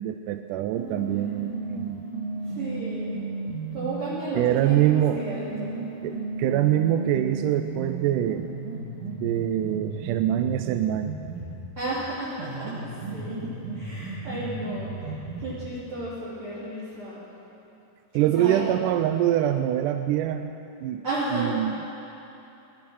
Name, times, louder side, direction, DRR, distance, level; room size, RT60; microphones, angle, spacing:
voice 1, 0.0-2.1 4.4-5.2 6.0-8.5 9.2-11.2 18.1-20.6 20.8-21.0 21.3-21.8, right 12 dB, 85° right, 8 dB, 2.1 m, -24 dB
sound 1, 0.8-4.0 4.8-11.7 12.3-15.7, right 3 dB, 70° right, 3.0 m, -35 dB
voice 2, 2.5-3.2 3.7-5.8 11.8-12.6 13.1-13.4 13.7-17.2 18.3-18.6 21.0-21.6, right 2 dB, 45° right, -11 dB, 3.5 m, -33 dB
19.0 x 11.5 x 6.2 m, 2.9 s
omnidirectional pair, 3.7 m